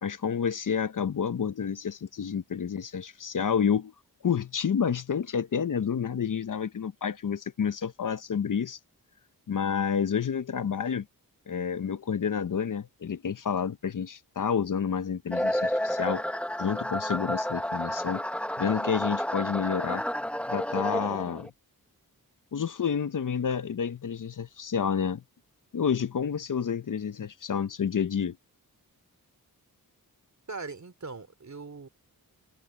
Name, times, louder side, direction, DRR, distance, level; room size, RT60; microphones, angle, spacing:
voice 1, 0.0-3.9 4.2-8.8 9.5-11.1 11.5-16.2 16.6-18.2 18.6-20.0 20.5-21.5 22.5-25.2 25.7-28.4, left 7 dB, 55° left, 0.8 m, -29 dB
sound 1, 15.3-21.5, equal, 5° left, 0.8 m, -30 dB
voice 2, 30.5-31.9, right 4 dB, 50° right, 3.5 m, -40 dB
wide cardioid pair, 75°, 37 cm